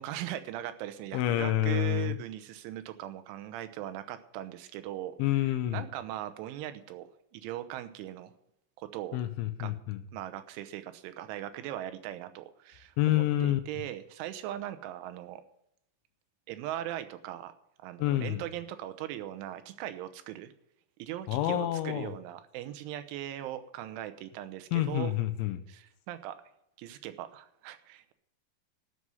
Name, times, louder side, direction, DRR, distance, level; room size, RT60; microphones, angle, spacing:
voice 1, 0.0-7.1 7.3-8.3 8.8-9.2 9.6-9.7 10.1-15.4 16.5-17.5 17.8-20.5 21.0-25.1 25.7-26.4 26.8-28.1, right 13 dB, 85° right, 11 dB, 3.4 m, -39 dB
voice 2, 1.1-2.2 5.2-5.8 9.1-10.0 13.0-13.6 18.0-18.4 21.3-22.1 24.7-25.6, left 14 dB, 90° left, 9 dB, 3.3 m, -28 dB
13.0 x 6.3 x 9.4 m, 0.82 s
omnidirectional pair, 5.4 m